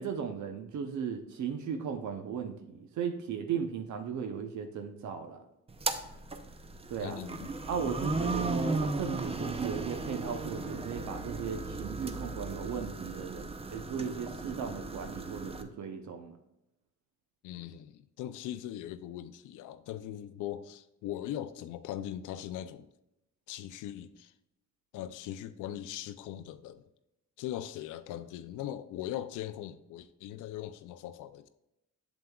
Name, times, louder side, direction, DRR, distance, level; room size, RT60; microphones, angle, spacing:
voice 1, 0.0-5.4 6.9-7.2 7.7-16.4, right 6 dB, 70° right, 0.8 m, -36 dB
sound 1, 5.7-15.6, right 3 dB, 20° right, 0.6 m, -36 dB
voice 2, 7.0-7.5 17.4-22.9 23.5-24.3 24.9-26.8 27.4-31.5, left 12 dB, 85° left, 0.5 m, -40 dB
7.7 x 7.2 x 2.3 m
cardioid pair, 90°, 30 cm